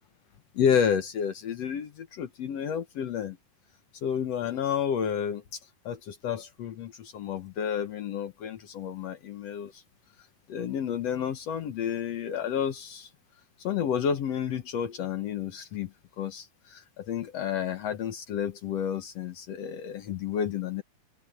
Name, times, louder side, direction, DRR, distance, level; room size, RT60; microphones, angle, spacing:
voice 1, 0.5-3.4 4.0-5.6 5.8-9.8 10.5-13.1 13.6-20.8, left 8 dB, 65° left, 1.7 m, -30 dB
open air
omnidirectional pair, 4.3 m